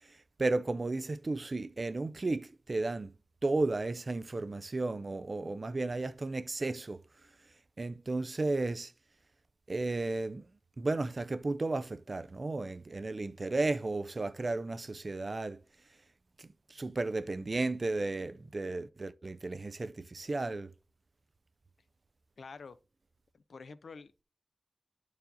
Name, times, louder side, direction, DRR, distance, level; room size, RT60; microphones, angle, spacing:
voice 1, 0.4-3.1 3.4-7.0 7.8-8.9 9.7-10.5 10.8-15.6 16.4-20.7, right 2 dB, 45° right, 0.3 m, -34 dB
voice 2, 22.4-22.8 23.3-24.2, left 4 dB, 85° left, 0.4 m, -48 dB
11.5 x 4.7 x 2.6 m
wide cardioid pair, 100°, 0 cm